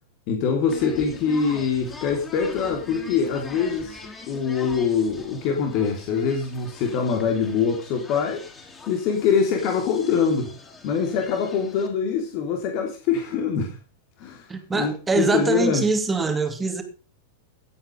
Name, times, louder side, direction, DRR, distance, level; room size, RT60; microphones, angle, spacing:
voice 1, 0.3-4.0 4.3-8.4 8.9-10.5 10.8-13.8 14.2-15.9, left 6 dB, 45° left, 3.3 m, -24 dB
sound 1, 0.7-11.9, left 4 dB, 15° left, 4.6 m, -42 dB
voice 2, 14.5-16.8, right 4 dB, 15° right, 2.7 m, -23 dB
17.5 x 8.8 x 5.3 m
figure-of-eight pair, 90°, 0 cm